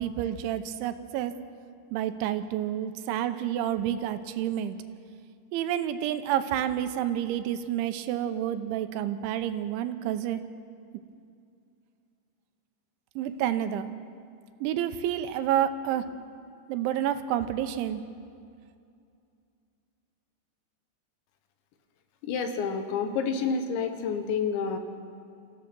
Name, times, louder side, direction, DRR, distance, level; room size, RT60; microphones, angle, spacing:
voice 1, 0.0-1.3 1.9-4.8 5.5-10.4 13.2-13.9 14.6-16.1 16.7-18.0, right 11 dB, 80° right, 9 dB, 3.2 m, -29 dB
voice 2, 22.2-24.8, left 5 dB, 75° left, 6 dB, 3.4 m, -29 dB
28.0 x 15.5 x 6.1 m, 2.4 s
omnidirectional pair, 5.4 m